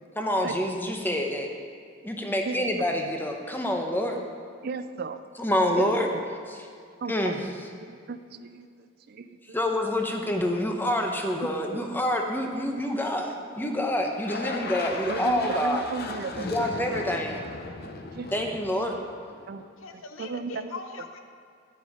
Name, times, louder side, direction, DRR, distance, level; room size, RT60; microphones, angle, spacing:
voice 1, 0.2-1.5 2.0-4.2 5.4-6.1 6.5-6.7 7.1-7.4 9.5-15.8 16.3-17.4 18.3-19.0, left 1 dB, 10° left, 2 dB, 0.8 m, -27 dB
voice 2, 4.6-5.3 5.8-6.2 7.0-7.3 7.8-8.7 9.1-9.6 11.7-11.9 13.6-13.7 14.8-16.7 18.1-18.3 19.5-19.6 19.9-20.8, right 4 dB, 50° right, 11 dB, 0.4 m, -35 dB
sound 1, 14.2-19.5, left 3 dB, 50° left, 0.7 m, -37 dB
voice 3, 19.8-21.2, left 4 dB, 75° left, 6 dB, 0.9 m, -41 dB
10.0 x 9.1 x 5.0 m, 2.3 s
head